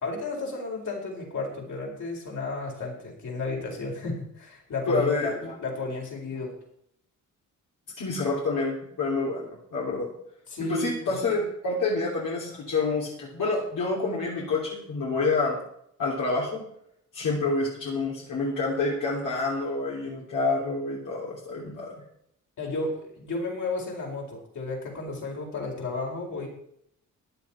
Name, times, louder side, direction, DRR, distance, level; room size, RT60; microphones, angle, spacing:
voice 1, 0.0-5.2 5.6-6.5 10.5-11.2 22.6-26.5, left 3 dB, 70° left, -1 dB, 4.6 m, -33 dB
voice 2, 4.9-5.5 8.0-10.1 10.6-15.6 16.0-16.6 17.1-21.9, left 3 dB, 85° left, -4 dB, 3.1 m, -28 dB
14.5 x 10.5 x 4.4 m, 0.72 s
cardioid pair, 105°, 31 cm